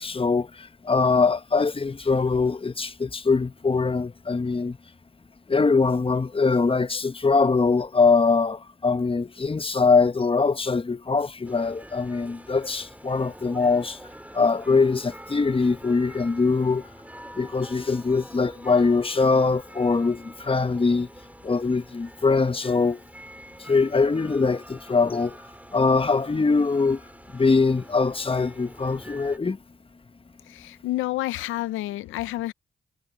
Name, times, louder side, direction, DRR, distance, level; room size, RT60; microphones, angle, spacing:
voice 1, 0.0-4.8 5.5-14.0 14.3-16.8 17.4-21.1 21.4-23.0 23.7-25.4 25.7-27.0 27.3-29.6, left 4 dB, 25° left, 1.3 m, -22 dB
sound 1, 11.4-29.4, right 1 dB, 5° right, 4.7 m, -46 dB
voice 2, 30.5-32.5, left 16 dB, 80° left, 0.7 m, -29 dB
hypercardioid pair, 40°, 20 cm